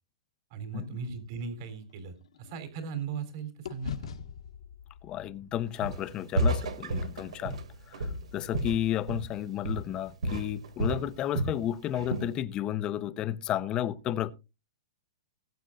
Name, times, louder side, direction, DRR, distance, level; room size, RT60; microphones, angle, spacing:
voice 1, 0.5-4.1, right 5 dB, 45° right, 3.5 m, -38 dB
sound 1, 1.0-3.3 3.6-7.9, left 9 dB, 85° left, 1.8 m, -45 dB
voice 2, 5.0-7.6 7.9-8.1 8.3-14.3, left 11 dB, 25° left, 0.8 m, -32 dB
Walk footsteps, 5.8-6.1 6.4-9.4 9.6-10.0 10.2-11.6 12.0-12.3, right 1 dB, 85° right, 2.6 m, -31 dB
19.5 x 9.0 x 2.5 m
hypercardioid pair, 150°, 3 cm